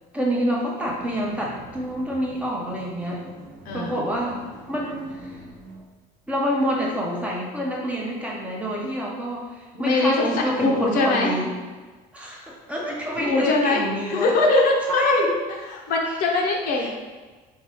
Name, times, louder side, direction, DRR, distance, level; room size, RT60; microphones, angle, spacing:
voice 1, 0.1-3.2 3.7-5.4 6.3-11.5 12.1-14.3 14.9-15.3 16.1-16.2 16.8-16.9, equal, 10° right, -3 dB, 0.8 m, -27 dB
sound 1, 0.8-5.8, right 3 dB, 65° right, 1.1 m, -44 dB
voice 2, 3.6-4.0 9.7-11.3 13.2-15.1 15.7-16.9, left 3 dB, 60° left, 0 dB, 0.9 m, -22 dB
4.6 x 2.6 x 4.4 m, 1.4 s
cardioid pair, 145°, 17 cm